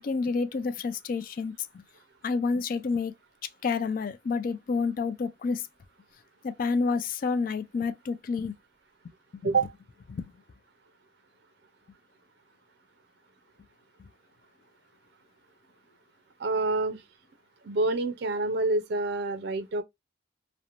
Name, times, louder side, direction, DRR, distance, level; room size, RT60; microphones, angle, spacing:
voice 1, 0.0-1.5 2.2-3.1 3.6-5.6 6.4-8.5 9.4-9.5 10.1-10.3 14.0-14.1, left 4 dB, 50° left, 0.3 m, -29 dB
voice 2, 16.4-17.0 17.6-19.8, right 3 dB, 60° right, 0.4 m, -27 dB
2.9 x 2.1 x 2.4 m
head